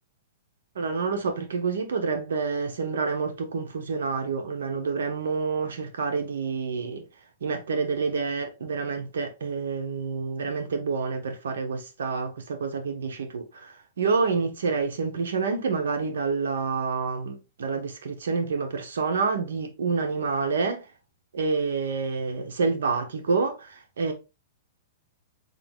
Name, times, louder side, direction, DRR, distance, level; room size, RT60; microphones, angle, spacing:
voice 1, 0.7-7.0 7.4-20.8 21.3-24.1, right 4 dB, 90° right, 1.1 m, -28 dB
3.8 x 2.7 x 3.6 m
hypercardioid pair, 150°, 0 cm